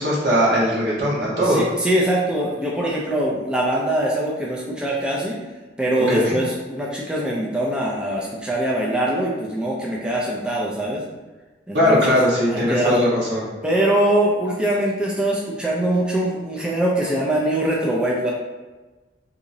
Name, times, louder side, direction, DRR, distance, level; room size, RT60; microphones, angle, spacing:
voice 1, 0.0-1.6 6.1-6.3 11.7-13.4, equal, 70° right, -5 dB, 1.1 m, -19 dB
voice 2, 1.4-5.4 5.8-11.0 11.7-12.1 12.5-13.1 13.6-18.3, right 1 dB, 5° right, -5 dB, 0.4 m, -22 dB
3.9 x 2.9 x 2.6 m, 1.2 s
head